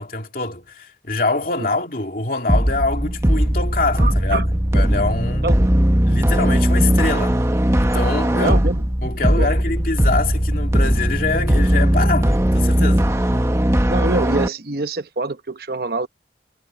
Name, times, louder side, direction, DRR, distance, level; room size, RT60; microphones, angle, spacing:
voice 1, 0.0-4.5 4.7-5.4 6.1-7.4 7.8-8.6 9.0-13.1, left 3 dB, 50° left, 2.8 m, -24 dB
sound 1, 2.5-14.5, equal, 15° right, 1.0 m, -18 dB
voice 2, 4.0-4.5 5.4-5.9 8.3-8.8 9.3-9.5 13.9-16.1, right 2 dB, 55° right, 1.0 m, -25 dB
head